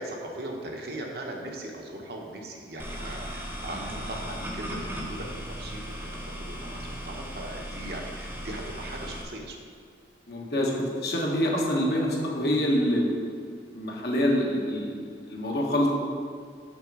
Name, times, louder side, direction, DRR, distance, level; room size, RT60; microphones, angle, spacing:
voice 1, 0.0-9.6, right 1 dB, 60° right, 0 dB, 1.0 m, -39 dB
sound 1, 2.8-9.2, equal, 10° right, 0.9 m, -37 dB
voice 2, 10.3-13.2 13.7-15.0 15.3-15.9, equal, 60° left, -2 dB, 1.3 m, -26 dB
6.7 x 4.4 x 6.0 m, 2.1 s
head